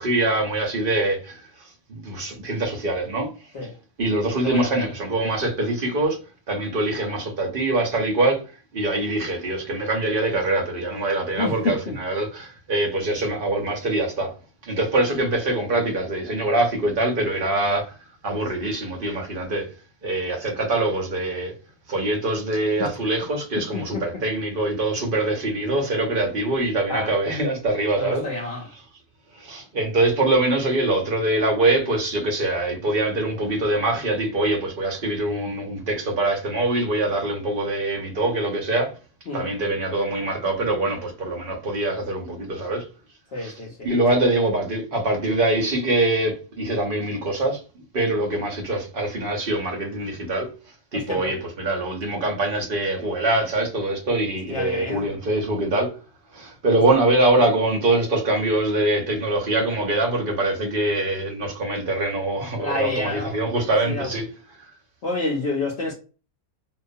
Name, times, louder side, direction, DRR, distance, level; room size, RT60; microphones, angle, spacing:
voice 1, 0.0-3.3 4.0-6.2 6.5-8.4 8.7-14.3 14.6-18.0 18.2-19.7 20.0-21.5 21.9-28.3 29.3-38.9 39.3-42.9 43.4-47.6 47.9-50.5 50.9-56.0 56.3-64.3 64.6-64.7, right 2 dB, 55° right, 0.6 m, -24 dB
voice 2, 4.4-4.8 11.4-12.0 23.7-24.0 26.9-27.1 28.0-28.7 39.3-39.5 43.3-44.2 50.9-51.3 54.5-55.1 62.6-63.4 63.8-64.1 65.0-65.9, left 2 dB, 60° left, 0.7 m, -28 dB
2.3 x 2.3 x 2.5 m
omnidirectional pair, 1.5 m